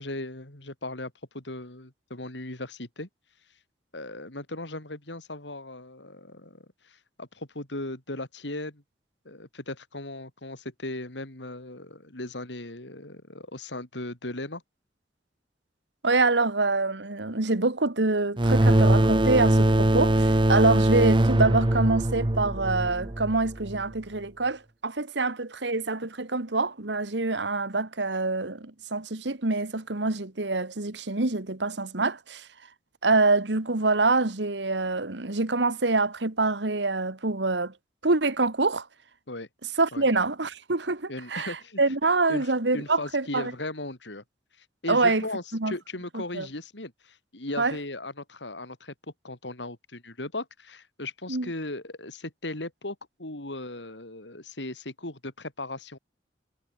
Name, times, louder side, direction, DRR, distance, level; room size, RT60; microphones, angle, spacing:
voice 1, 0.0-3.1 3.9-8.8 9.2-14.6 39.3-39.5 39.9-40.1 41.1-41.8 42.3-42.5 42.7-44.2 44.6-48.9 49.2-56.0, left 2 dB, 85° left, 4.3 m, -37 dB
voice 2, 16.0-32.5 33.0-37.7 38.0-38.9 39.8-43.5 44.9-45.2 45.5-45.7 46.1-46.5 47.6-47.8 51.3-51.5, right 3 dB, 80° right, 1.8 m, -25 dB
sound 1, 18.4-23.8, right 1 dB, 25° right, 0.9 m, -22 dB
head